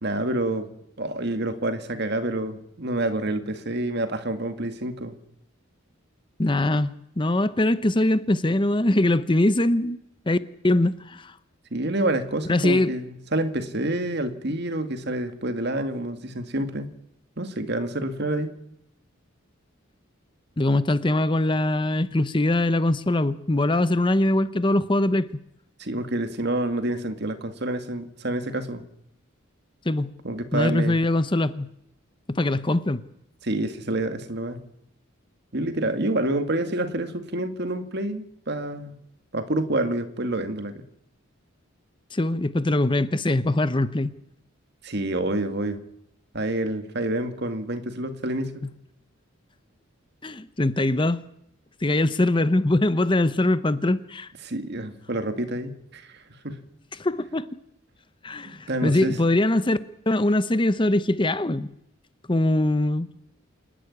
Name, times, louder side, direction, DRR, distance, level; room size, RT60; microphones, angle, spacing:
voice 1, 0.0-0.7 1.0-5.2 11.7-16.9 17.4-18.5 25.8-28.8 30.2-31.0 33.4-34.6 35.5-38.9 39.3-40.8 44.8-45.8 46.3-48.7 54.4-56.6 58.5-59.2, right 1 dB, 55° right, 2.1 m, -28 dB
voice 2, 6.4-10.0 10.3-10.4 10.6-11.3 12.5-12.9 20.6-25.3 29.8-30.1 30.5-31.7 32.3-33.0 42.1-44.1 50.2-51.3 51.8-54.3 56.9-57.5 58.2-59.8 60.1-61.7 62.3-63.1, left 1 dB, 25° left, 0.7 m, -22 dB
28.0 x 11.5 x 9.8 m
head